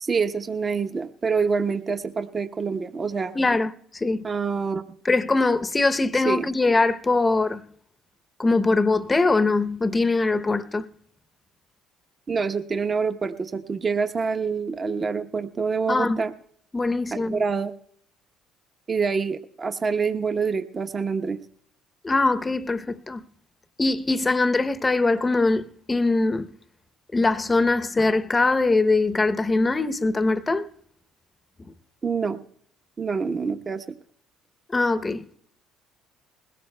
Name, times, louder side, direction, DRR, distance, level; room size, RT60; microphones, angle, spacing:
voice 1, 0.0-3.3 4.2-4.8 6.1-6.4 12.3-16.3 17.1-17.7 18.9-21.4 32.0-32.4 33.0-34.0, right 5 dB, 35° right, 0.9 m, -26 dB
voice 2, 3.3-3.7 4.0-4.2 5.0-7.6 8.4-10.9 15.9-16.2 16.7-17.4 22.0-23.2 23.8-26.5 27.1-30.7 34.7-35.3, left 3 dB, 20° left, 0.7 m, -22 dB
20.5 x 17.0 x 2.2 m
supercardioid pair, 70°, 0 cm